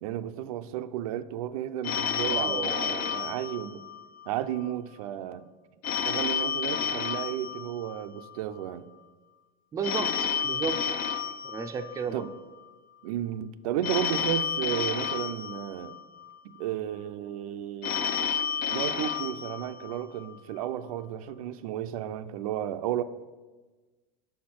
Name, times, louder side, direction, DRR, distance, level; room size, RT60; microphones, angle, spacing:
voice 1, 0.0-3.8 4.3-5.4 5.9-8.8 12.1-12.3 13.0-15.9 16.4-18.3 18.7-23.0, right 11 dB, 85° right, 0.4 m, -33 dB
Telephone, 1.8-4.3 5.8-8.3 9.8-12.3 13.8-16.3 17.8-20.3, left 7 dB, 55° left, 0.5 m, -31 dB
voice 2, 2.2-3.2 9.7-10.8 11.4-12.3, right 5 dB, 20° right, 0.4 m, -33 dB
5.4 x 4.3 x 5.9 m
supercardioid pair, 130°, 18 cm